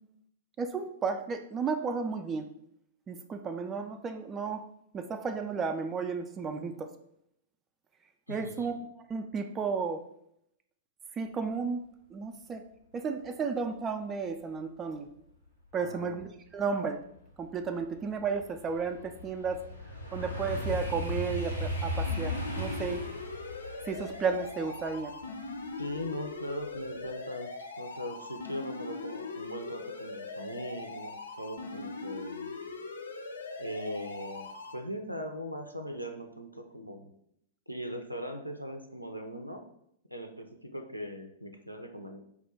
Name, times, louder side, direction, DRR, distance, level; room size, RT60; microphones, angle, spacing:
voice 1, 0.6-2.5 3.1-4.6 4.9-6.9 8.3-8.8 9.1-10.0 11.2-11.8 12.1-12.6 12.9-15.1 15.7-16.3 16.5-17.0 17.4-19.6 20.1-23.0 23.9-25.1, right 5 dB, 20° right, 6 dB, 0.3 m, -33 dB
voice 2, 8.3-8.7 15.7-16.2 25.8-27.5 27.8-32.6 33.6-37.1 37.7-39.6 40.1-42.2, equal, 90° right, 5 dB, 0.4 m, -40 dB
sound 1, 16.6-16.7 17.2-26.2 26.6-27.0, left 1 dB, 85° left, 0.8 m, -37 dB
sound 2, 22.1-34.7, left 3 dB, 70° left, 0.5 m, -41 dB
4.8 x 2.2 x 3.3 m, 0.73 s
figure-of-eight pair, 105°, 0 cm